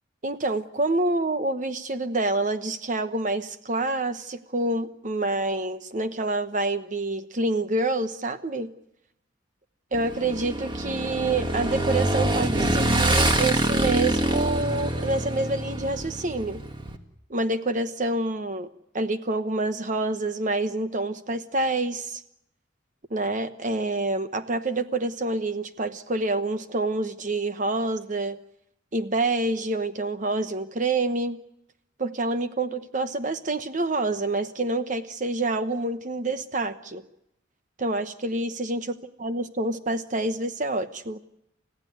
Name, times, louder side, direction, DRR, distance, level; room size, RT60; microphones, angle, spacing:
voice 1, 0.2-8.7 9.9-16.6 17.3-18.7 18.9-22.2 23.1-28.4 28.9-31.4 32.0-37.0 37.8-38.9 39.2-41.2, right 2 dB, 40° right, 10 dB, 1.1 m, -27 dB
Motorcycle / Engine, 9.9-17.0, right 1 dB, 25° right, 1.9 m, -25 dB
29.5 x 15.5 x 9.6 m, 0.81 s
head